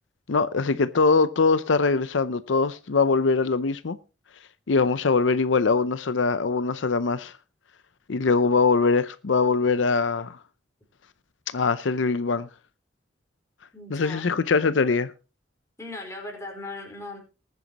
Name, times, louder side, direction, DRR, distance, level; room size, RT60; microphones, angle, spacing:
voice 1, 0.3-4.0 4.7-7.3 8.1-10.4 11.5-12.5 13.9-15.1, left 4 dB, 85° left, 0.6 m, -22 dB
voice 2, 13.7-14.3 15.8-17.2, left 2 dB, 15° left, 4.5 m, -38 dB
20.0 x 9.3 x 2.9 m
head